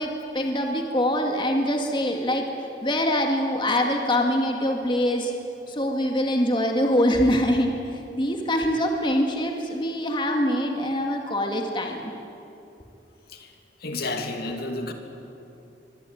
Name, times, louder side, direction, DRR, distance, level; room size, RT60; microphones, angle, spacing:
voice 1, 0.0-2.4 2.8-5.3 5.7-12.1, equal, 30° left, 2 dB, 2.0 m, -24 dB
voice 2, 13.8-14.9, left 2 dB, 60° left, 4 dB, 2.7 m, -31 dB
24.0 x 24.0 x 9.2 m, 2.8 s
head